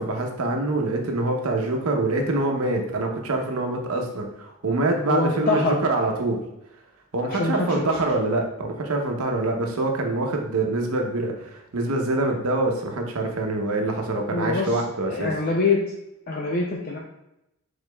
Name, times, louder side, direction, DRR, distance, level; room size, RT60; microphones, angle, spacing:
voice 1, 0.0-6.4 7.1-15.3, right 2 dB, 85° right, 2 dB, 0.7 m, -25 dB
voice 2, 5.1-5.8 7.2-7.9 14.3-14.8 15.1-15.8 16.3-17.0, left 3 dB, 40° left, -1 dB, 0.4 m, -24 dB
5.0 x 3.9 x 2.2 m, 0.89 s
head